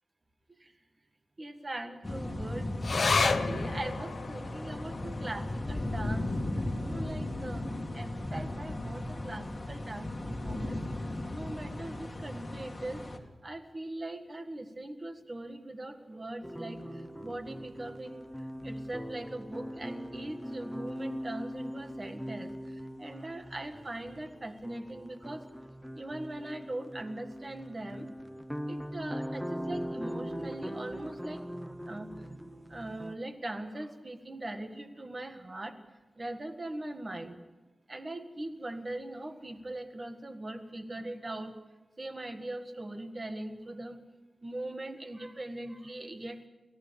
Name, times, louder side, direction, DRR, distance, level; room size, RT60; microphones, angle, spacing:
voice 1, 1.4-2.7 3.2-6.4 6.8-10.8 11.3-13.0 13.4-18.3 18.6-22.5 23.0-25.4 25.9-28.1 28.7-31.4 31.9-35.7 36.2-37.4 37.9-41.6 42.0-44.0 44.4-46.5, right 1 dB, 25° right, 7 dB, 1.7 m, -41 dB
sound 1, 2.0-13.2, left 1 dB, 25° left, 2.1 m, -36 dB
sound 2, 2.8-9.6 9.9-10.0 10.3-11.0 11.6-11.7, left 4 dB, 45° left, 1.0 m, -35 dB
sound 3, 16.4-33.2, equal, ahead, 0.8 m, -41 dB
30.0 x 14.5 x 7.1 m, 1.2 s
wide cardioid pair, 175°, 0 cm